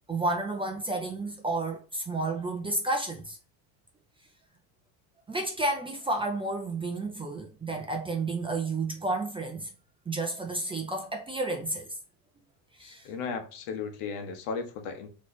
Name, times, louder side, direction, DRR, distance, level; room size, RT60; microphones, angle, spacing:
voice 1, 0.1-3.4 5.3-9.7 10.1-11.9 12.8-13.1, right 2 dB, 10° right, 0.4 m, -31 dB
voice 2, 12.8-15.1, left 5 dB, 75° left, 1.1 m, -35 dB
4.1 x 3.1 x 3.2 m
cardioid pair, 135°, 46 cm